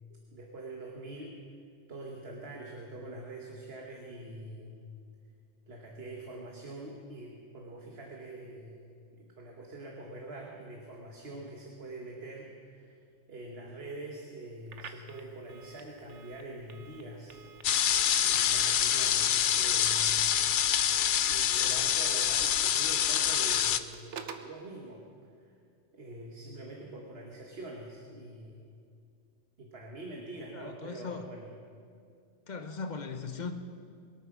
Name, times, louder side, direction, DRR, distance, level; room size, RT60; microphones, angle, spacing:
voice 1, 0.1-1.4 1.9-4.9 5.7-8.8 9.1-13.0 13.3-17.4 18.2-20.3 21.3-25.0 25.9-28.6 29.6-31.5, right 2 dB, 55° right, -1 dB, 1.6 m, -44 dB
Telephone, 14.7-24.5, right 6 dB, 70° right, 1.2 m, -50 dB
sound 1, 17.6-23.8, left 9 dB, 60° left, 0.5 m, -26 dB
voice 2, 30.5-31.3 32.5-33.5, left 4 dB, 40° left, 7 dB, 1.0 m, -39 dB
21.5 x 9.0 x 6.1 m, 2.3 s
omnidirectional pair, 1.3 m